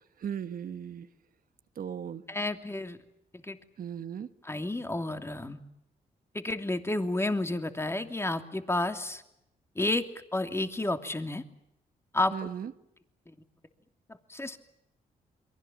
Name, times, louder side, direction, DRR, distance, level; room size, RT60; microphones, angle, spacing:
voice 1, 0.2-1.1 1.8-2.2 3.8-4.3 12.3-12.7, right 8 dB, 65° right, 10 dB, 1.5 m, -37 dB
voice 2, 2.3-3.0 3.3-3.6 4.4-5.6 6.3-9.2 9.7-10.1 10.3-11.4 12.1-12.4 13.3-13.4 14.3-14.6, left 2 dB, 15° left, 7 dB, 2.9 m, -31 dB
29.0 x 23.5 x 7.6 m, 0.81 s
cardioid pair, 80°, 16 cm